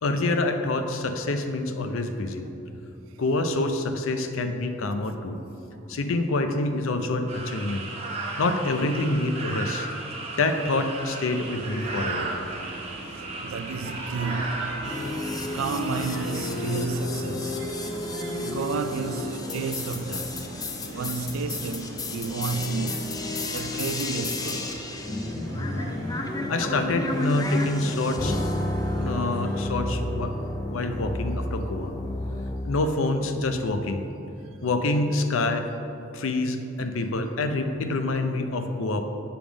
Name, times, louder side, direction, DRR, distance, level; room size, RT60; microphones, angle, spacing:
voice 1, 0.0-2.5 3.2-5.4 5.9-7.8 8.4-9.9 10.4-12.3 26.5-28.4 29.0-30.3 30.7-31.9 32.6-34.1 34.6-35.7 36.1-39.0, left 2 dB, 90° left, 0.5 m, -26 dB
sound 1, 7.3-17.0, right 2 dB, 30° right, 0.8 m, -35 dB
sound 2, 11.3-29.7, right 1 dB, 60° right, 0.9 m, -41 dB
voice 2, 13.1-15.0 15.5-17.7 18.4-20.4 20.9-24.7 28.6-28.8, right 4 dB, 85° right, 0.4 m, -31 dB
sound 3, 14.8-32.8, left 2 dB, 20° left, 0.4 m, -31 dB
7.0 x 3.5 x 6.1 m
head